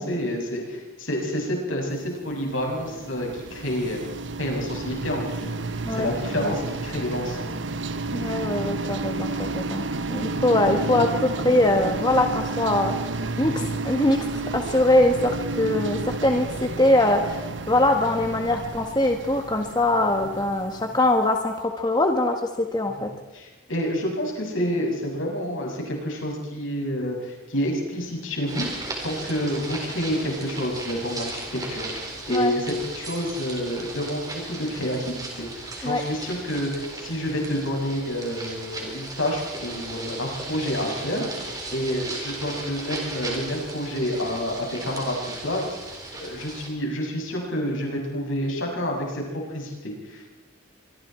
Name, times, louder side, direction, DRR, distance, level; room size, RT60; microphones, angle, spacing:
voice 1, 0.0-4.0 4.4-5.5 5.9-7.5 13.4-13.6 23.0-41.3 41.7-45.6 46.2-49.2 49.5-50.3, equal, 80° left, 0 dB, 6.8 m, -29 dB
sound 1, 2.2-21.2, right 3 dB, 65° right, 1.1 m, -31 dB
voice 2, 8.1-12.9 13.4-23.1 32.3-32.5 35.8-36.0, left 1 dB, 20° left, 3 dB, 1.6 m, -22 dB
sound 2, 28.5-46.7, right 2 dB, 20° right, 4.0 m, -36 dB
25.0 x 24.0 x 4.5 m, 1.1 s
head